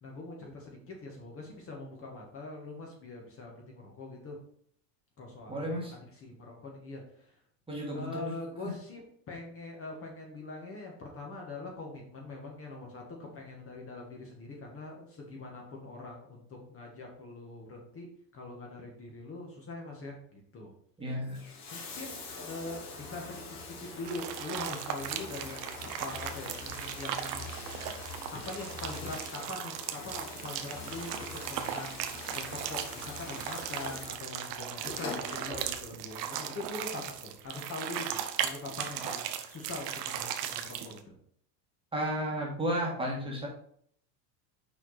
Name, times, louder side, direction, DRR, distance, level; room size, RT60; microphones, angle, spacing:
voice 1, 0.0-4.4 5.2-5.9 6.1-7.4 7.9-9.0 9.3-18.1 18.3-20.7 21.7-27.5 28.3-41.2, left 2 dB, 25° left, 0 dB, 1.4 m, -43 dB
voice 2, 5.5-5.9 7.7-8.4 21.0-21.4 41.9-43.5, equal, 10° right, -2 dB, 1.5 m, -33 dB
Bathtub (filling or washing), 21.2-36.1 37.2-37.3, left 3 dB, 65° left, 2.4 m, -44 dB
sound 1, 24.0-41.0, right 10 dB, 80° right, 0.9 m, -38 dB
5.8 x 4.6 x 4.0 m, 0.63 s
supercardioid pair, 130°, 49 cm